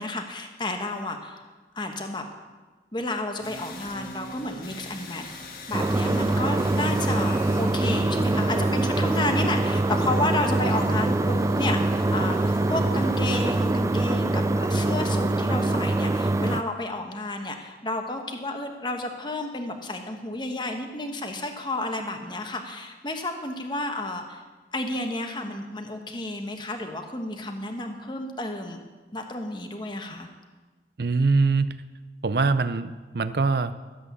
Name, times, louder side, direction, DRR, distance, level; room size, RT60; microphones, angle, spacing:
voice 1, 0.0-1.4 1.7-2.2 2.9-5.3 5.7-24.4 24.7-28.8 29.1-30.3, left 2 dB, 25° left, 4 dB, 1.2 m, -31 dB
sound 1, 3.4-13.7, left 1 dB, 55° left, 1.8 m, -42 dB
sound 2, 5.7-16.6, right 2 dB, 15° right, 0.3 m, -24 dB
voice 2, 31.0-31.7 32.2-33.8, right 4 dB, 60° right, 13 dB, 0.6 m, -23 dB
13.5 x 7.9 x 8.2 m, 1.3 s
head